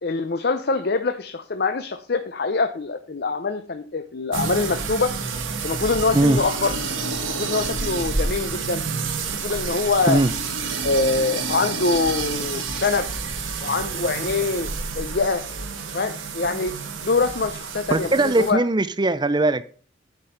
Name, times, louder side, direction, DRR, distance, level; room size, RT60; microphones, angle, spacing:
voice 1, 0.0-5.1 5.6-6.7 7.3-8.8 9.4-10.2 10.8-13.1 13.6-14.7 14.9-15.4 15.9-16.7 17.0-18.6, left 4 dB, 50° left, 0.6 m, -24 dB
after flushing, 4.3-18.5, right 4 dB, 80° right, 1.5 m, -29 dB
voice 2, 17.9-19.6, right 2 dB, 20° right, 0.5 m, -20 dB
9.5 x 5.2 x 5.8 m
head